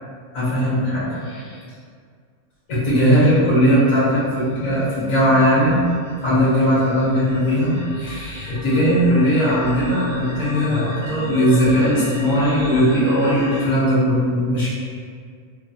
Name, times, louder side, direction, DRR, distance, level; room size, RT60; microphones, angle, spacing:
voice 1, 0.3-1.6 2.7-5.8 6.2-14.7, equal, 70° left, -10 dB, 1.4 m, -18 dB
sound 1, 4.3-13.6, left 1 dB, 85° right, 1.4 m, -34 dB
3.4 x 2.0 x 2.6 m, 2.1 s
omnidirectional pair, 1.5 m